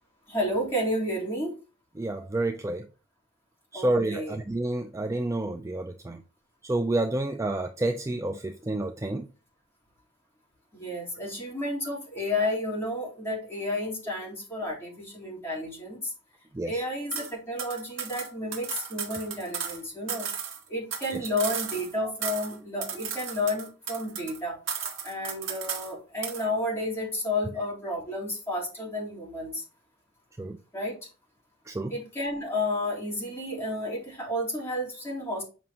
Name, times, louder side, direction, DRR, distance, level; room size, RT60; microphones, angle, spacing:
voice 1, 0.3-1.6 3.7-4.3 10.7-16.1 16.6-20.3 20.7-24.6 25.0-29.6 30.7-31.0 31.9-35.4, left 1 dB, 15° left, 3.3 m, -31 dB
voice 2, 2.0-2.9 3.7-6.2 6.6-9.3 16.5-16.9 21.1-21.3 30.4-30.6 31.7-32.0, right 2 dB, 15° right, 0.4 m, -29 dB
sound 1, 17.1-17.3 17.6-19.8 20.1-21.9 22.2-22.6 22.8-24.4 24.7-25.9 26.2-26.5, right 7 dB, 70° right, 1.5 m, -35 dB
7.6 x 5.0 x 2.8 m
head